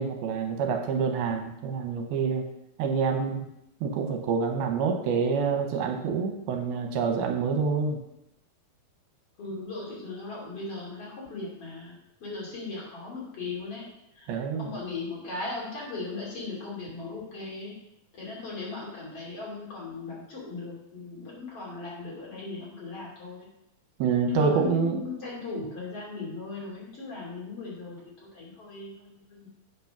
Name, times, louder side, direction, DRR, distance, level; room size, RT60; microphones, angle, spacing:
voice 1, 0.0-2.5 2.8-3.4 3.8-8.0 14.3-14.7 24.0-25.1, right 5 dB, 80° right, 4 dB, 2.7 m, -27 dB
voice 2, 9.4-13.9 14.2-14.3 14.6-17.7 18.1-23.5 24.3-29.5, left 3 dB, 40° left, -5 dB, 3.6 m, -38 dB
8.4 x 6.0 x 5.9 m, 0.84 s
omnidirectional pair, 4.4 m